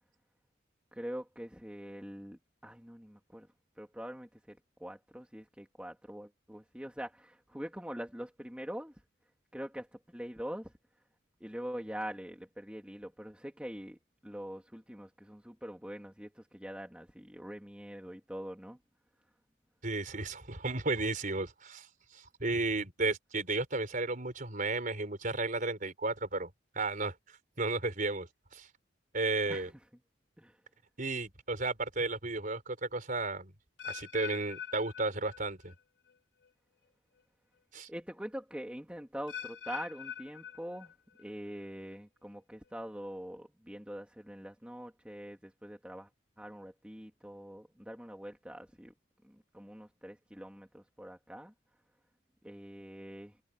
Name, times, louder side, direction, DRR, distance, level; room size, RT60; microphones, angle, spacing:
voice 1, 0.9-3.5 3.8-9.0 9.5-10.7 11.4-18.8 29.5-29.7 30.4-30.6 37.9-40.9 41.2-46.1 46.4-48.9 49.2-51.5 52.4-53.4, equal, 5° right, 2.3 m, -44 dB
voice 2, 19.8-21.9 22.1-26.5 26.7-27.1 27.6-28.7 29.1-29.7 31.0-33.5 33.8-35.7 37.7-37.9, right 3 dB, 45° right, 4.6 m, -33 dB
sound 1, 33.8-35.8 36.1-36.5 37.2-37.3 39.3-41.2 41.5-42.0 42.6-42.7, left 8 dB, 75° left, 4.3 m, -44 dB
head